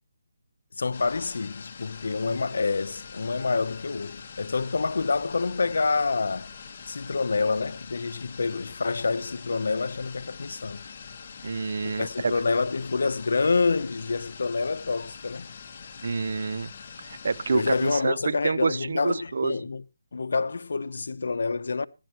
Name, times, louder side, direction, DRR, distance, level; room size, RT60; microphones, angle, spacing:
voice 1, 0.7-6.5 6.9-10.9 11.8-15.5 17.5-19.8 20.1-21.9, left 4 dB, 70° left, 0.8 m, -27 dB
sound 1, 0.9-18.0, left 6 dB, 35° left, 1.4 m, -44 dB
voice 2, 11.4-12.3 16.0-16.7 17.0-19.6, right 4 dB, 60° right, 0.7 m, -28 dB
15.5 x 11.5 x 3.0 m
hypercardioid pair, 170°, 0 cm